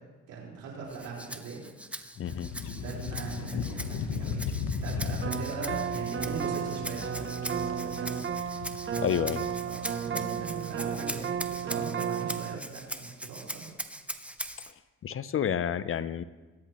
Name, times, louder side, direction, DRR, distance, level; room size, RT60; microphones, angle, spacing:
voice 1, 0.3-1.6 2.7-8.2 9.6-13.7, right 4 dB, 90° right, -4 dB, 4.4 m, -40 dB
Rattle (instrument), 0.9-14.7, right 1 dB, 5° right, 0.8 m, -41 dB
sound 1, 2.2-11.9, left 6 dB, 85° left, 1.0 m, -38 dB
voice 2, 2.2-2.5 9.0-9.4 15.0-16.2, left 8 dB, 45° left, 14 dB, 0.6 m, -29 dB
sound 2, 5.2-12.6, right 8 dB, 40° right, 0.7 m, -33 dB
22.0 x 10.0 x 3.0 m, 1.2 s
cardioid pair, 90°, 30 cm